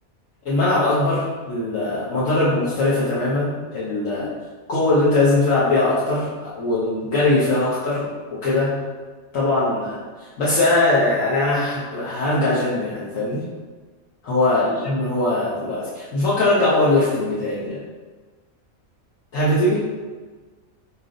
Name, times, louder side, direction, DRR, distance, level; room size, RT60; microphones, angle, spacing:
voice 1, 0.4-4.3 4.7-8.8 9.3-13.5 14.2-17.8 19.3-19.9, left 2 dB, 75° left, -9 dB, 1.3 m, -21 dB
4.1 x 3.0 x 3.8 m, 1.4 s
omnidirectional pair, 1.4 m